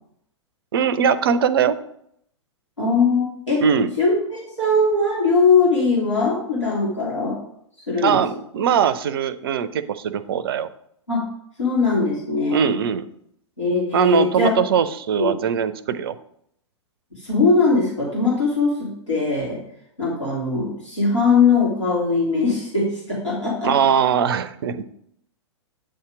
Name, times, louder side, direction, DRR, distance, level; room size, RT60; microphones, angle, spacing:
voice 1, 0.7-1.8 3.6-3.9 8.0-10.7 12.5-13.0 13.9-16.2 23.6-24.9, right 7 dB, 50° right, 15 dB, 0.4 m, -21 dB
voice 2, 2.8-3.6 4.0-7.4 7.9-8.2 11.1-11.3 11.6-12.8 13.6-14.5 15.2-15.3 17.2-19.6 20.0-23.7, left 4 dB, 85° left, -6 dB, 2.0 m, -20 dB
8.5 x 2.8 x 4.8 m, 0.72 s
figure-of-eight pair, 105°, 15 cm